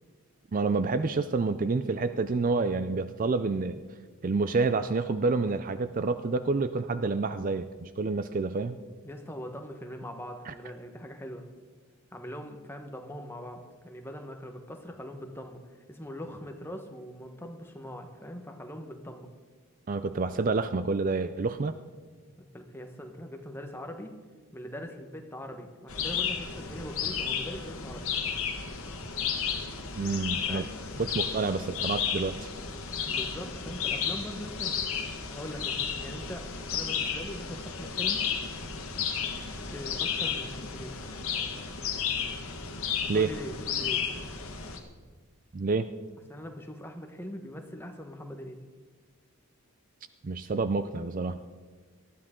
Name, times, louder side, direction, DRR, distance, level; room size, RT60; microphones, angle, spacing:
voice 1, 0.5-3.8 4.2-8.8 10.5-10.6 19.9-21.7 30.0-30.7 31.0-32.5 43.1-43.3 45.5-45.9 50.2-51.4, right 3 dB, 35° right, 11 dB, 0.4 m, -28 dB
voice 2, 9.0-11.4 12.1-15.6 15.9-19.3 22.4-24.1 24.5-28.1 30.5-30.7 33.1-34.9 35.3-38.2 39.7-41.0 43.1-44.0 46.3-48.6, equal, 10° left, 4 dB, 1.1 m, -41 dB
sound 1, 25.9-44.8, left 7 dB, 65° left, 1.6 m, -33 dB
19.5 x 13.5 x 3.7 m, 1.5 s
head